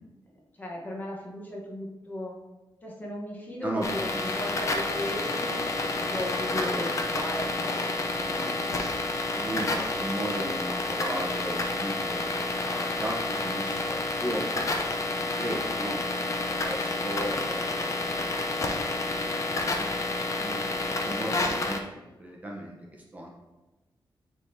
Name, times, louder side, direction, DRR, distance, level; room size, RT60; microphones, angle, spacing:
voice 1, 0.6-2.4 2.8-5.6 6.0-7.5, left 1 dB, 20° left, -2 dB, 1.1 m, -36 dB
sound 1, 3.8-21.8, left 2 dB, 40° left, 0.6 m, -29 dB
voice 2, 4.1-4.6 6.5-7.0 8.1-14.7 15.1-18.2 19.0-19.9 20.4-23.3, right 1 dB, 20° right, -2 dB, 0.9 m, -37 dB
9.7 x 3.7 x 2.8 m, 1.1 s
wide cardioid pair, 150°, 8 cm